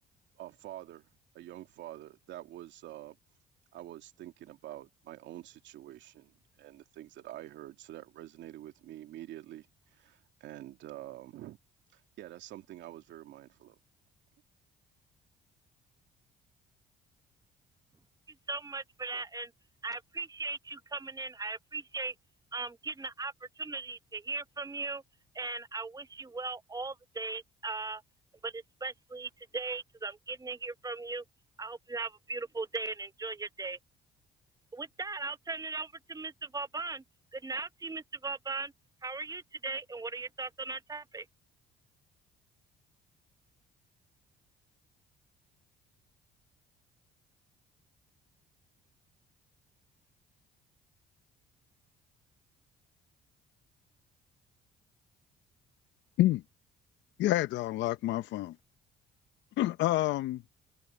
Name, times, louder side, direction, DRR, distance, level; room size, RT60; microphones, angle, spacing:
voice 1, 0.4-1.1 1.3-3.2 3.7-11.6 11.9-13.8, right 14 dB, 75° right, 2.7 m, -47 dB
voice 2, 18.5-19.5 19.8-22.1 22.5-25.0 25.3-28.0 28.4-31.2 31.6-33.8 34.7-37.0 37.3-38.7 39.0-41.3, right 3 dB, 20° right, 1.0 m, -38 dB
voice 3, 57.2-58.5 59.6-60.4, left 15 dB, 70° left, 0.9 m, -28 dB
supercardioid pair, 65°, 19 cm